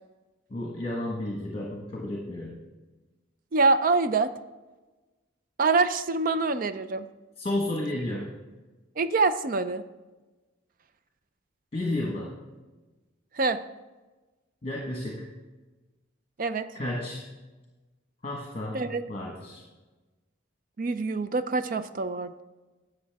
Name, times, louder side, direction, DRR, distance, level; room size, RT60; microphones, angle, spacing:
voice 1, 0.5-2.5 7.4-8.3 11.7-12.3 14.6-15.3 16.7-17.2 18.2-18.8 19.1-19.6, left 1 dB, 30° left, -3 dB, 1.3 m, -32 dB
voice 2, 3.5-4.3 5.6-7.1 9.0-9.8 13.3-13.6 16.4-16.7 18.7-19.0 20.8-22.4, right 3 dB, 45° right, 12 dB, 0.4 m, -25 dB
11.0 x 7.9 x 3.5 m, 1.2 s
head